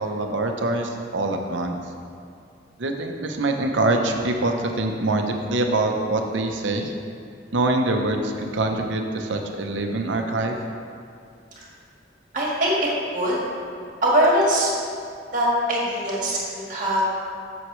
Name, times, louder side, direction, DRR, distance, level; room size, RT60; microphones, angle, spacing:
voice 1, 0.0-1.8 2.8-6.9 7.5-10.6, right 2 dB, 75° right, 3 dB, 0.7 m, -24 dB
voice 2, 12.3-12.7 13.1-13.4 14.0-14.7 15.3-17.2, equal, 45° right, -4 dB, 1.7 m, -21 dB
7.9 x 7.1 x 3.1 m, 2.4 s
head